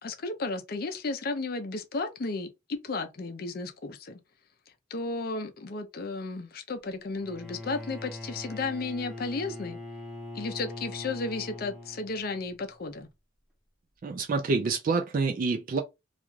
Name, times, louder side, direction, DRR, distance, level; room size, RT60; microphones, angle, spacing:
voice 1, 0.0-4.2 4.9-9.8 10.3-13.1, left 3 dB, 50° left, 0.5 m, -34 dB
Bowed string instrument, 7.2-12.4, left 1 dB, ahead, 0.7 m, -41 dB
voice 2, 14.0-15.8, right 4 dB, 45° right, 0.3 m, -27 dB
2.4 x 2.2 x 3.0 m
head